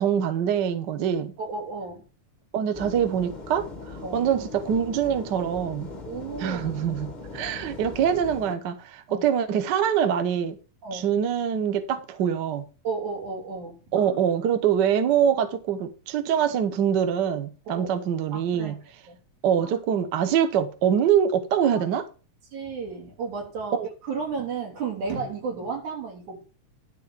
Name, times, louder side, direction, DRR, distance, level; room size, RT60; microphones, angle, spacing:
voice 1, 0.0-1.3 2.5-3.7 4.1-5.9 6.4-10.6 10.9-12.7 13.9-18.8 19.4-22.0 23.8-23.9, right 8 dB, 65° right, 1.1 m, -24 dB
voice 2, 1.4-2.0 4.0-4.2 6.0-6.7 9.1-9.3 10.8-11.1 12.8-14.3 17.7-17.9 18.3-18.8 19.1-19.2 19.6-19.7 21.6-21.8 22.5-26.4, right 4 dB, 85° right, 4.6 m, -33 dB
sound 1, 2.7-8.5, left 3 dB, 85° left, 0.4 m, -40 dB
11.5 x 4.2 x 7.3 m
omnidirectional pair, 3.3 m